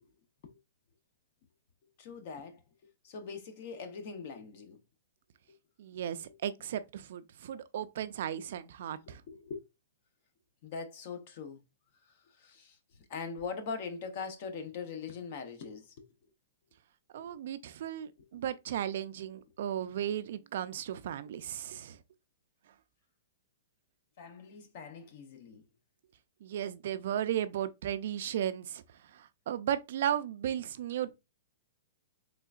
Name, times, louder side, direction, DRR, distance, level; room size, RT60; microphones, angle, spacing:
voice 1, 2.0-2.6 3.0-4.8 9.1-9.6 10.6-11.6 12.0-16.1 17.2-17.4 18.2-18.4 24.2-25.6, left 5 dB, 45° left, 0.8 m, -42 dB
voice 2, 5.8-9.2 17.1-22.0 26.4-28.8 29.1-31.1, right 10 dB, 60° right, 0.4 m, -35 dB
3.7 x 3.3 x 2.4 m
hypercardioid pair, 160°, 0 cm